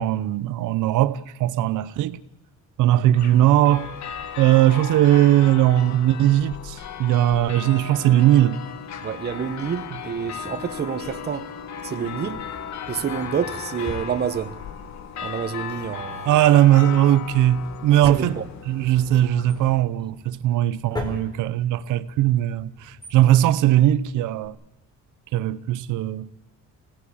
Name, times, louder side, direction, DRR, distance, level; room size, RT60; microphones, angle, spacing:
voice 1, 0.0-2.2 2.8-3.9 4.4-8.6 16.2-18.4 18.7-24.6 25.3-26.3, right 13 dB, 85° right, 0.9 m, -19 dB
sound 1, 3.1-19.8, left 8 dB, 65° left, 1.8 m, -36 dB
voice 2, 9.0-11.5 11.8-12.5 12.9-14.6 15.2-16.3 18.1-18.4, right 8 dB, 35° right, 1.2 m, -28 dB
Drawer open or close, 10.0-11.6 12.4-14.9 15.1-15.2 15.7-24.5, left 2 dB, 15° left, 4.2 m, -41 dB
25.0 x 17.5 x 8.6 m
cardioid pair, 150°, 30 cm